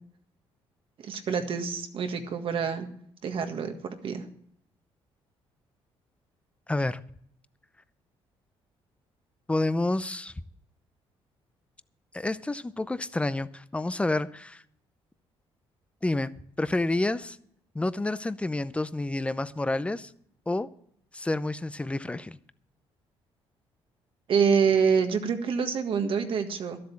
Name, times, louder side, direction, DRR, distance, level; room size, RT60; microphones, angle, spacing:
voice 1, 1.0-2.9 3.2-4.2 24.3-26.8, right 6 dB, 60° right, 1.7 m, -26 dB
voice 2, 6.7-7.0 9.5-10.3 12.1-14.6 16.0-16.3 16.6-17.4 17.7-20.1 20.5-20.7 21.1-22.4, left 2 dB, 10° left, 0.6 m, -29 dB
12.5 x 7.7 x 7.2 m
cardioid pair, 95°, 10 cm